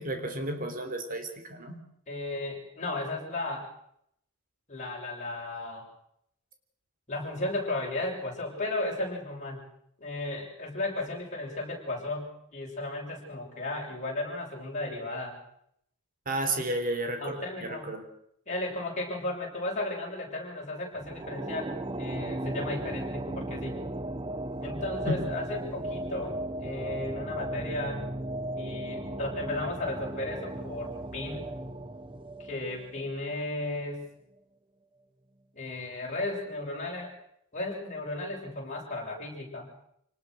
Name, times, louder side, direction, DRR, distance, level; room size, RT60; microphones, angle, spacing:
voice 1, 0.0-1.8 16.3-18.1 25.1-25.3, right 2 dB, 40° right, 6 dB, 3.8 m, -33 dB
voice 2, 2.1-3.7 4.7-5.9 7.1-9.6 10.0-15.4 16.5-16.6 17.2-17.9 18.5-23.8 24.6-28.1 28.6-31.5 32.4-34.1 35.5-37.1 37.5-39.7, left 2 dB, 35° left, -2 dB, 7.2 m, -35 dB
sound 1, 21.0-33.5, right 1 dB, 25° right, 0.9 m, -36 dB
26.5 x 19.0 x 6.4 m, 0.72 s
head